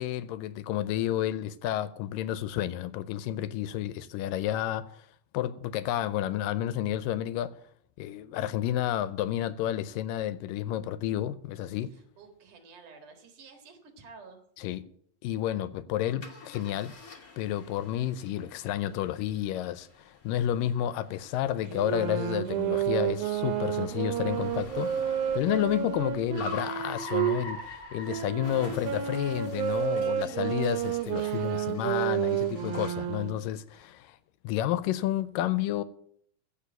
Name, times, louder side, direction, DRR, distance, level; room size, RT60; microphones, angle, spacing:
voice 1, 0.0-4.8 5.3-7.5 8.0-11.9 14.6-14.8 15.2-16.9 17.4-34.2 34.4-35.8, left 12 dB, 80° left, 2.2 m, -31 dB
voice 2, 11.9-14.4 31.1-31.7 33.7-33.9, right 4 dB, 65° right, 3.2 m, -51 dB
Car, 16.2-33.1, left 3 dB, 40° left, 1.3 m, -46 dB
sound 1, 21.7-27.4 28.1-33.4, right 10 dB, 85° right, 2.7 m, -30 dB
15.5 x 5.2 x 9.0 m
omnidirectional pair, 4.0 m